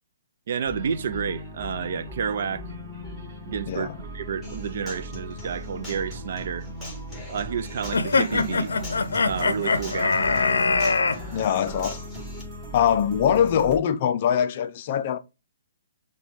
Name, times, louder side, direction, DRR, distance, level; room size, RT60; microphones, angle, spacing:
voice 1, 0.5-2.7 3.5-6.7 7.3-8.7 9.2-10.1, right 7 dB, 55° right, 0.4 m, -30 dB
sound 1, 0.7-13.8, left 1 dB, 20° right, 1.8 m, -38 dB
voice 2, 3.7-4.0 11.3-12.0 12.7-15.2, left 9 dB, 40° left, 0.4 m, -23 dB
Human voice / Acoustic guitar, 4.4-12.4, equal, ahead, 1.4 m, -42 dB
sound 2, 7.9-11.2, left 4 dB, 90° left, 0.6 m, -22 dB
5.7 x 2.3 x 3.9 m
hypercardioid pair, 155°, 0 cm